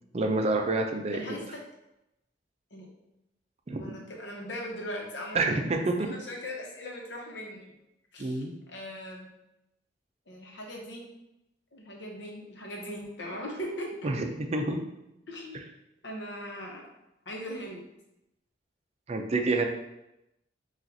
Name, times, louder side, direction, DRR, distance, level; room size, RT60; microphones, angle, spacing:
voice 1, 0.1-1.4 3.7-3.9 5.3-6.1 8.2-8.5 14.0-14.8 19.1-19.6, right 2 dB, 35° right, 4 dB, 0.4 m, -28 dB
voice 2, 1.1-1.6 2.7-2.9 3.8-5.6 6.0-7.7 8.1-9.3 10.3-11.0 11.7-14.1 15.3-15.7 16.0-16.8 17.3-17.8, equal, 75° left, -1 dB, 0.9 m, -39 dB
5.7 x 2.4 x 2.7 m, 0.90 s
head